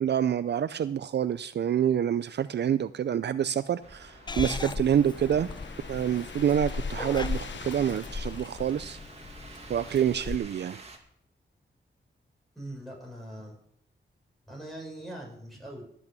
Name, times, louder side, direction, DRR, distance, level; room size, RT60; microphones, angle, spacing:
voice 1, 0.0-5.5 5.9-9.0 9.7-10.8, right 9 dB, 65° right, 14 dB, 0.4 m, -27 dB
sound 1, 3.2-9.7, left 6 dB, 75° left, 1.0 m, -47 dB
sound 2, 3.8-11.0, right 3 dB, 35° right, 2.1 m, -50 dB
Purr / Meow, 4.3-10.4, left 4 dB, 25° left, 0.6 m, -37 dB
voice 2, 12.5-13.6 14.5-15.8, right 1 dB, ahead, -1 dB, 6.4 m, -41 dB
13.5 x 8.6 x 6.7 m, 0.70 s
wide cardioid pair, 95°, 19 cm